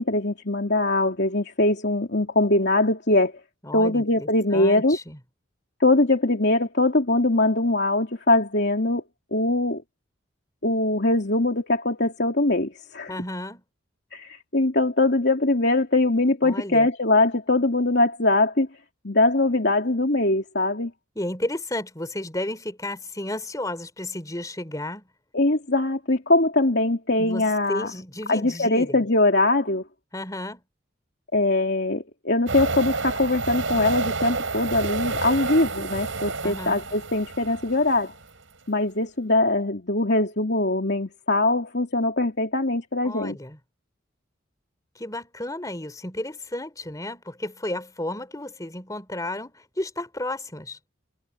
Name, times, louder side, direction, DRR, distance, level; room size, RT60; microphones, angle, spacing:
voice 1, 0.0-3.3 3.7-5.0 5.8-9.0 9.3-9.8 10.6-13.1 14.1-18.7 19.0-20.9 25.3-27.9 28.3-29.8 31.3-38.1 38.7-43.4, left 2 dB, 55° left, 3.2 m, -22 dB
voice 2, 3.6-5.2 13.1-13.6 16.4-16.9 21.2-25.0 27.2-29.0 30.1-30.6 36.4-36.8 43.0-43.6 45.0-50.8, left 1 dB, 15° left, 3.9 m, -33 dB
sound 1, 32.5-38.2, right 3 dB, 85° right, 4.6 m, -30 dB
head